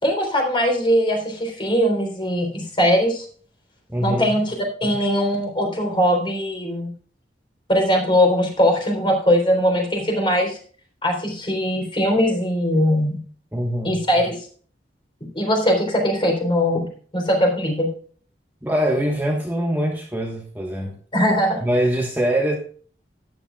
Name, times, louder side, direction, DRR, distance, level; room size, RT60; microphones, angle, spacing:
voice 1, 0.0-3.3 4.0-4.5 4.8-6.9 7.7-10.6 11.0-13.2 13.8-14.4 15.3-17.9 21.1-21.6, equal, 30° left, 2 dB, 3.7 m, -20 dB
voice 2, 3.9-4.4 13.5-14.0 18.6-20.9 21.6-22.5, equal, 10° right, 0 dB, 1.3 m, -23 dB
13.5 x 10.0 x 2.3 m, 0.43 s
head